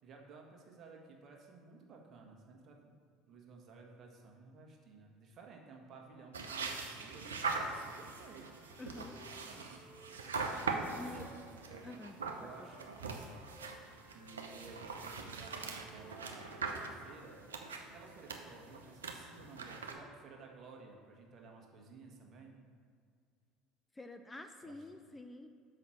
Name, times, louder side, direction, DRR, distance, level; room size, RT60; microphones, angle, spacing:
voice 1, 0.0-2.9 3.3-8.5 9.2-9.9 10.9-11.9 12.3-13.2 14.1-17.4 17.9-22.6 24.6-24.8, right 4 dB, 45° right, 0 dB, 1.5 m, -55 dB
Wind instrument woodwind instrument, 6.0-11.8 12.5-19.0, left 1 dB, 70° left, 1.4 m, -61 dB
sound 1, 6.3-19.9, right 4 dB, 85° right, 0.7 m, -42 dB
voice 2, 8.8-9.2 10.9-11.3 11.8-12.7 23.9-25.5, left 2 dB, 15° left, 7 dB, 0.5 m, -48 dB
5.7 x 5.6 x 6.3 m, 2.2 s
figure-of-eight pair, 65°, 0 cm